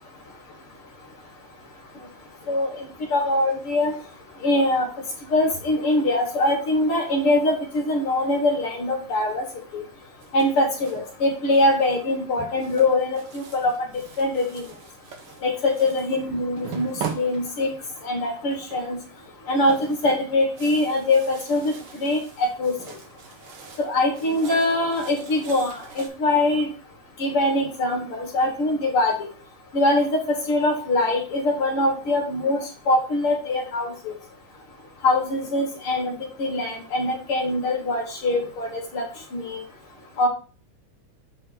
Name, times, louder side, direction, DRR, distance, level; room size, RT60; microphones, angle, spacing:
voice 1, 2.5-3.9 4.4-4.9 5.3-9.5 9.7-9.8 10.3-13.7 14.2-14.6 15.4-17.7 18.0-19.0 19.5-21.7 22.0-22.7 23.8-26.7 27.2-29.3 29.7-32.6 32.9-34.1 35.0-36.1 36.4-39.0 39.3-39.6 40.2-40.3, left 2 dB, 55° left, 0 dB, 2.1 m, -23 dB
sound 1, 10.2-11.1 11.5-12.0 12.6-16.2 16.6-18.0 18.5-19.0 19.3-23.9 24.1-26.1, right 6 dB, 60° right, 1.5 m, -40 dB
8.0 x 3.5 x 4.7 m, 0.38 s
omnidirectional pair, 3.4 m